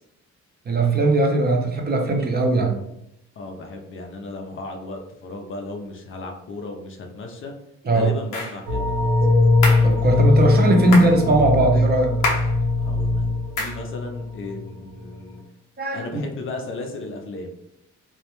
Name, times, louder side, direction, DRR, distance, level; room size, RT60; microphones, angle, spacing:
voice 1, 0.7-2.8 7.9-8.1 9.8-12.2 15.8-16.2, right 2 dB, 35° right, 2 dB, 0.5 m, -19 dB
voice 2, 3.4-7.5 7.8-9.1 12.8-13.2 13.6-15.4 15.9-17.5, left 2 dB, 45° left, 2 dB, 0.5 m, -35 dB
sound 1, 8.3-8.6 9.6-9.9 10.9-11.2 12.2-12.5 13.6-13.8, left 2 dB, 85° left, 0.7 m, -25 dB
sound 2, 8.7-14.6 14.9-15.1, left 3 dB, 75° right, 0.7 m, -21 dB
2.3 x 2.1 x 2.9 m, 0.80 s
cardioid pair, 90°, 30 cm